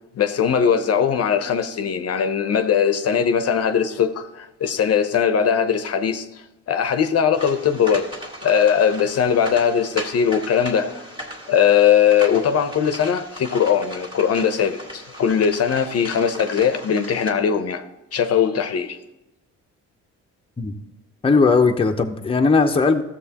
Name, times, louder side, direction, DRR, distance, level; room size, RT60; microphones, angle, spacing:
voice 1, 0.2-6.3 6.7-8.1 8.4-11.0 11.5-17.8 18.1-19.0, left 7 dB, 55° left, 0.7 m, -20 dB
sound 1, 7.3-17.3, equal, 15° right, 1.9 m, -37 dB
voice 2, 21.2-23.0, left 4 dB, 20° left, 0.7 m, -18 dB
13.5 x 7.2 x 2.8 m
cardioid pair, 90°, 30 cm